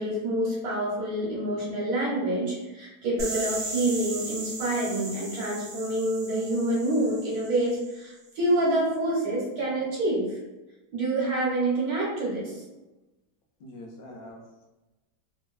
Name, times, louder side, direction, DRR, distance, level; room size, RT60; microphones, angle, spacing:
voice 1, 0.0-10.4 10.9-12.6, right 1 dB, 65° right, -6 dB, 1.8 m, -27 dB
sound 1, 3.2-8.0, right 2 dB, 50° right, 0.8 m, -37 dB
voice 2, 13.6-14.7, left 1 dB, 70° left, 1 dB, 1.0 m, -45 dB
3.5 x 3.1 x 2.2 m, 1.1 s
omnidirectional pair, 1.7 m